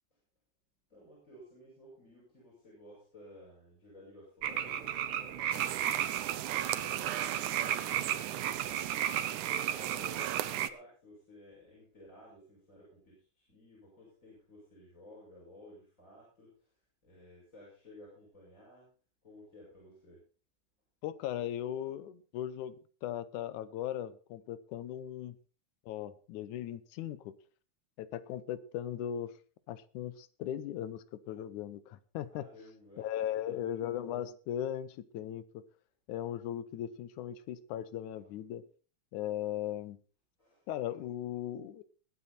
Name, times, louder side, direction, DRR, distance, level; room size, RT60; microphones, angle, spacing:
voice 1, 0.9-16.7 17.0-18.9 19.2-20.2 32.3-33.5 40.4-40.7, left 1 dB, 25° left, -5 dB, 6.3 m, -55 dB
sound 1, 4.4-10.7, right 10 dB, 65° right, 1.4 m, -34 dB
sound 2, 5.5-10.7, right 14 dB, 85° right, 2.2 m, -38 dB
voice 2, 21.0-25.4 25.9-27.4 28.0-29.4 29.7-32.5 33.0-35.6 36.1-38.6 39.1-40.0 40.7-41.8, left 11 dB, 80° left, 15 dB, 2.3 m, -38 dB
21.0 x 8.5 x 4.3 m, 0.39 s
omnidirectional pair, 3.5 m